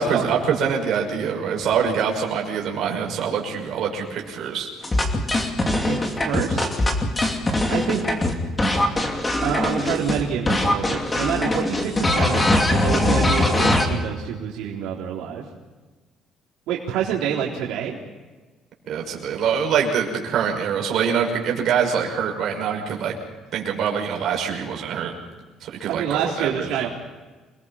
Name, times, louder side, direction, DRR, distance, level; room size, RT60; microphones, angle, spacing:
voice 1, 0.0-4.7 18.9-23.2 23.5-25.1 25.6-26.7, right 7 dB, 50° right, 0 dB, 5.9 m, -24 dB
sound 1, 4.8-10.2 10.5-13.9, left 1 dB, 15° left, 2.6 m, -21 dB
voice 2, 5.7-6.9 7.7-8.0 9.4-15.4 16.7-18.0 25.9-26.9, right 8 dB, 85° right, -3 dB, 3.7 m, -27 dB
28.5 x 20.5 x 5.7 m, 1.3 s
cardioid pair, 175°, 0 cm